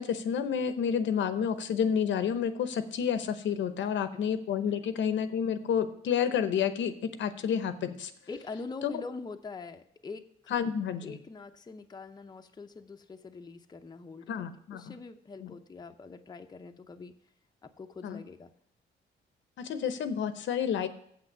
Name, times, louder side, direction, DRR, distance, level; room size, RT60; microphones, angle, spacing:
voice 1, 0.0-8.1 8.8-9.0 10.5-11.2 14.3-14.9 15.4-15.5 18.0-18.2 19.6-20.9, left 7 dB, 70° left, 11 dB, 0.8 m, -30 dB
voice 2, 3.8-4.3 8.3-10.5 11.0-14.3 14.7-17.1 17.6-18.5, left 4 dB, 20° left, 6 dB, 0.6 m, -44 dB
7.7 x 6.1 x 6.7 m, 0.68 s
cardioid pair, 90°, 20 cm